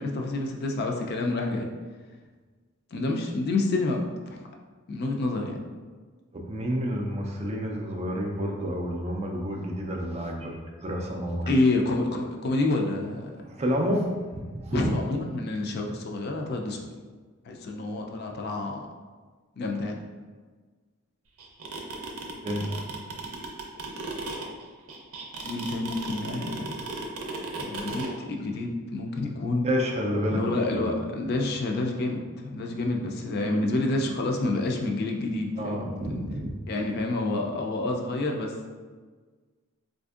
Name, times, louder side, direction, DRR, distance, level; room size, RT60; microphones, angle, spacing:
voice 1, 0.0-1.7 2.9-4.4 4.9-5.6 11.5-13.3 14.7-16.8 17.5-18.8 19.6-20.0 25.4-26.7 27.6-29.6 30.3-36.0 36.7-38.5, left 2 dB, 45° left, 1 dB, 0.4 m, -28 dB
voice 2, 6.3-11.5 13.4-14.9 22.4-22.7 29.6-30.4 30.7-30.9 35.6-36.6, equal, 30° right, 0 dB, 0.3 m, -29 dB
sound 1, 21.4-28.1, right 4 dB, 85° right, 0.6 m, -35 dB
4.2 x 2.5 x 2.4 m, 1.4 s
head